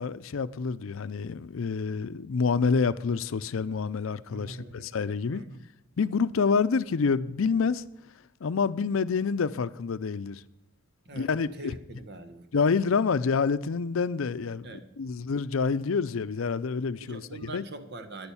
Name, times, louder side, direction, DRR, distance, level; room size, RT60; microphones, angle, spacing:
voice 1, 0.0-5.4 6.0-7.8 8.4-10.4 11.1-11.7 12.5-17.7, left 5 dB, 75° left, 0.5 m, -27 dB
voice 2, 4.3-4.9 5.3-5.6 11.0-12.5 14.6-15.2 17.0-18.3, right 2 dB, 55° right, 1.2 m, -43 dB
10.5 x 8.9 x 7.0 m
head